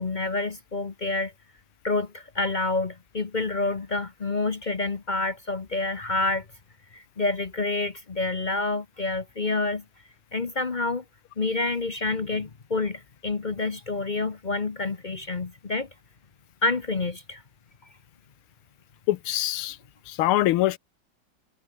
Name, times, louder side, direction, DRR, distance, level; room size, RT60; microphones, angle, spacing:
voice 1, 0.0-1.3 1.8-6.4 6.9-9.8 10.3-11.0 11.4-15.9 16.6-17.4, left 3 dB, 40° left, 0.6 m, -28 dB
voice 2, 19.1-19.8 20.1-20.8, left 15 dB, 85° left, 1.6 m, -23 dB
omnidirectional pair, 2.4 m